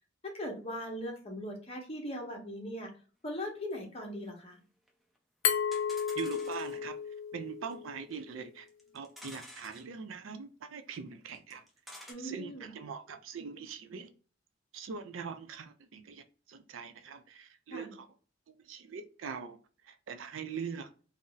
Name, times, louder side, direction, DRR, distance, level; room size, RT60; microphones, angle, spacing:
voice 1, 0.3-2.9 3.2-4.6 12.1-12.8 17.7-17.9, equal, 30° left, 1 dB, 0.9 m, -40 dB
sound 1, 3.7-3.8 4.0-4.1 4.3-4.4 4.9-5.0 5.2-5.3 5.7-6.9 7.7-7.8 8.1-8.2 8.7-9.8 10.9-11.0 11.3-12.1, equal, ahead, 0.6 m, -50 dB
Glass, 5.4-8.2, left 7 dB, 75° left, 0.5 m, -33 dB
voice 2, 6.2-7.0 7.3-8.7 8.9-11.6 12.2-14.1 14.7-18.1 18.5-19.6 19.8-20.9, right 6 dB, 85° right, 9 dB, 0.4 m, -42 dB
2.6 x 2.0 x 3.8 m, 0.38 s
head